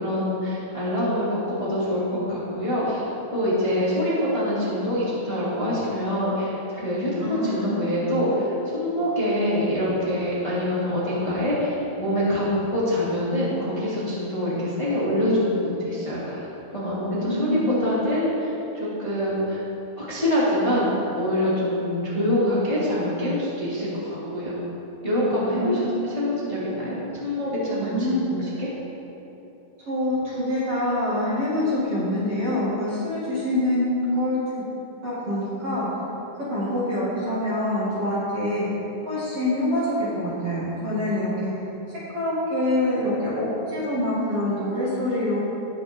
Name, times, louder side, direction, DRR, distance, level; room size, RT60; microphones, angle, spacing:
voice 1, 0.0-3.0 3.3-19.6 20.0-20.9 21.2-24.6 25.0-28.7, left 1 dB, 20° left, -9 dB, 0.9 m, -25 dB
voice 2, 7.2-7.8 17.1-17.7 25.5-25.9 27.8-28.2 29.9-34.4 35.0-35.9 36.4-38.7 39.1-41.5 42.1-45.4, left 1 dB, 45° right, -10 dB, 2.3 m, -25 dB
18.0 x 6.4 x 3.7 m, 2.9 s
omnidirectional pair, 5.2 m